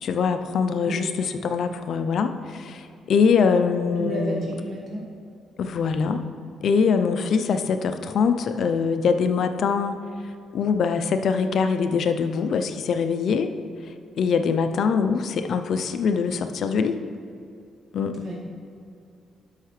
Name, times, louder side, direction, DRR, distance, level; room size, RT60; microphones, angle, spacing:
voice 1, 0.0-4.5 5.6-6.3 6.6-10.0 10.5-13.5 14.2-17.0 17.9-18.2, left 5 dB, 65° left, 8 dB, 0.5 m, -23 dB
voice 2, 3.8-5.0 18.1-18.3, equal, 45° right, -5 dB, 1.6 m, -32 dB
12.0 x 5.7 x 3.2 m, 2.4 s
cardioid pair, 90°, 0 cm